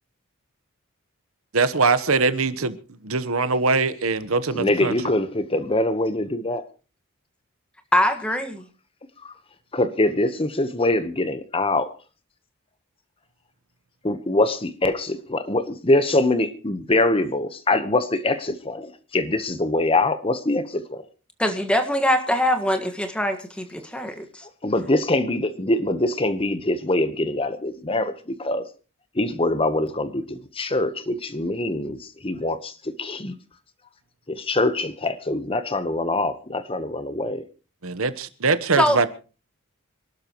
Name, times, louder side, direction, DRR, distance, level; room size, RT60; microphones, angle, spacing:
voice 1, 1.5-2.8 3.0-5.0 37.8-39.1, right 4 dB, 80° right, 1.1 m, -22 dB
voice 2, 4.5-6.6 9.7-11.9 14.0-21.0 24.6-28.1 28.4-28.6 29.2-32.7 33.0-33.3 34.3-37.4, left 2 dB, 25° left, 1.1 m, -23 dB
voice 3, 7.9-8.7 21.4-24.4 38.8-39.0, left 1 dB, 5° left, 1.6 m, -22 dB
26.0 x 12.5 x 3.1 m
head